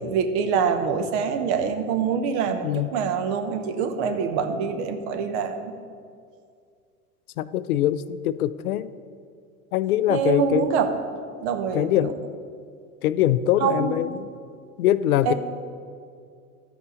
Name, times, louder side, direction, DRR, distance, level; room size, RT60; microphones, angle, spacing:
voice 1, 0.0-5.7 10.1-10.9 11.4-12.1 13.6-14.0 15.2-15.3, right 6 dB, 50° right, 8 dB, 1.0 m, -25 dB
voice 2, 7.4-8.9 9.7-10.7 11.7-12.2 13.0-14.3 14.8-15.3, left 12 dB, 75° left, 15 dB, 0.5 m, -23 dB
13.0 x 4.8 x 5.1 m, 2.2 s
hypercardioid pair, 95°, 44 cm